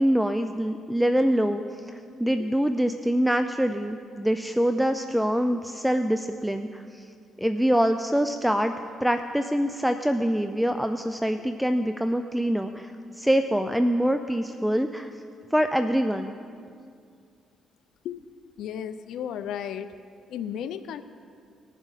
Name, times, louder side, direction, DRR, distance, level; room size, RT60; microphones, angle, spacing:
voice 1, 0.0-7.1 7.4-8.7 9.0-15.1 15.5-16.4, equal, ahead, 8 dB, 0.4 m, -25 dB
voice 2, 18.6-19.9 20.3-21.0, left 9 dB, 80° left, 11 dB, 0.4 m, -34 dB
19.5 x 7.3 x 4.1 m, 2.3 s
cardioid pair, 90°, 0 cm